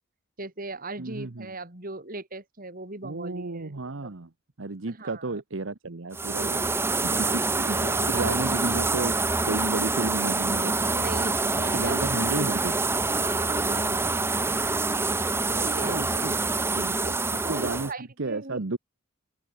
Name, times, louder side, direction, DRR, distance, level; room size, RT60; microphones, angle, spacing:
voice 1, 0.4-3.7 4.0-4.1 4.9-5.4 6.9-8.6 10.8-12.1 13.1-14.7 15.5-16.2 17.0-17.1 17.4-18.6, right 2 dB, 40° right, 3.4 m, -39 dB
voice 2, 1.0-1.5 3.0-4.3 4.6-6.7 7.2-7.3 7.6-9.2 9.5-11.1 11.6-12.7 15.8-16.4 16.7-17.0 17.3-17.9 18.2-18.8, right 3 dB, 60° right, 1.0 m, -32 dB
sound 1, 6.1-17.9, right 3 dB, 10° right, 0.6 m, -26 dB
head